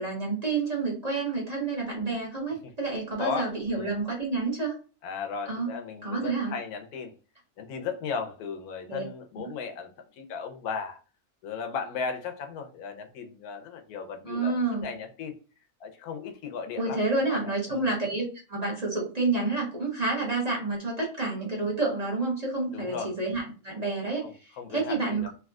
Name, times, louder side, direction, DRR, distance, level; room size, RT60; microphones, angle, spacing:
voice 1, 0.0-4.7 5.5-5.7 6.0-6.5 8.9-9.0 14.2-14.9 16.8-25.3, right 3 dB, 30° right, -4 dB, 0.9 m, -29 dB
voice 2, 3.2-3.9 5.0-7.1 7.6-9.9 10.2-11.0 11.4-15.3 15.8-17.0 17.3-17.8 22.7-23.1 24.2-25.3, left 5 dB, 80° left, 6 dB, 1.1 m, -36 dB
3.4 x 2.6 x 2.3 m, 0.35 s
omnidirectional pair, 1.6 m